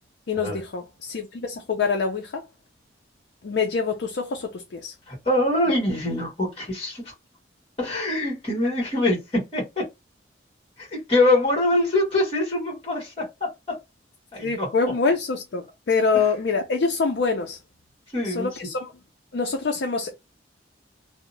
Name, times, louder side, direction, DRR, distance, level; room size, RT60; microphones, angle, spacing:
voice 1, 0.3-2.5 3.4-4.9 14.4-17.6 18.2-18.9 19.3-20.1, left 4 dB, 70° left, 0.4 m, -25 dB
voice 2, 5.1-7.1 7.8-9.8 10.8-13.8 14.3-14.7 18.1-18.5, left 1 dB, 30° left, 1.3 m, -24 dB
2.7 x 2.0 x 2.5 m
head